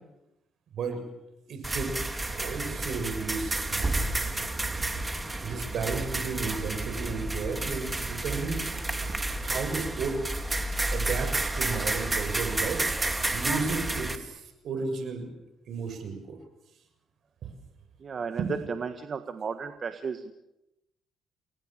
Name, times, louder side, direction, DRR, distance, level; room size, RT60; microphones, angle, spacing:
voice 1, 1.5-3.9 5.4-8.9 9.4-10.2 10.9-12.8 13.3-15.3 15.7-16.4 17.4-17.5 18.4-18.5, right 4 dB, 65° right, 6 dB, 6.9 m, -33 dB
sound 1, 1.6-14.2, right 2 dB, 20° right, 3.1 m, -31 dB
voice 2, 18.0-18.4 18.7-20.3, right 5 dB, 45° right, 8 dB, 1.7 m, -34 dB
29.5 x 21.0 x 7.5 m, 0.92 s
cardioid pair, 90°, 0 cm